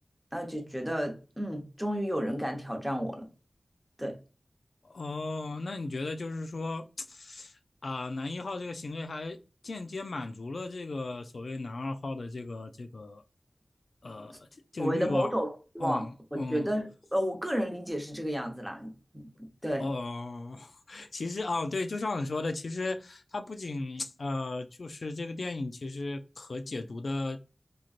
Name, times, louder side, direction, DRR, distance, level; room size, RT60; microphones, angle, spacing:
voice 1, 0.3-3.3 4.0-4.2 14.3-14.4 14.8-16.0 16.3-19.2 19.6-19.9, equal, 5° right, 0.9 m, -32 dB
voice 2, 4.8-13.2 14.0-14.5 14.7-15.3 15.8-16.7 19.8-27.4, left 2 dB, 75° left, 0.3 m, -35 dB
3.0 x 2.6 x 2.4 m
wide cardioid pair, 60°, 0 cm